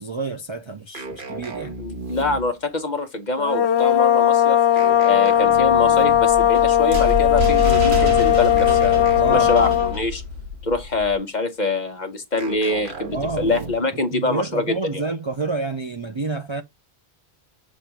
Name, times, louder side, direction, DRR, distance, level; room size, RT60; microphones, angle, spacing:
voice 1, 0.0-1.7 9.2-9.5 13.1-16.6, right 3 dB, 35° right, 0.5 m, -29 dB
sound 1, 0.9-2.7 4.8-6.4 8.6-10.1 12.4-14.0, right 2 dB, 55° right, 1.3 m, -35 dB
voice 2, 1.8-4.6 5.0-10.2 10.6-15.0, left 3 dB, 45° left, 1.2 m, -25 dB
sound 2, 3.4-10.0, left 11 dB, 85° left, 1.0 m, -17 dB
sound 3, 6.1-11.2, left 2 dB, 75° right, 1.3 m, -27 dB
7.2 x 2.6 x 5.8 m
omnidirectional pair, 1.1 m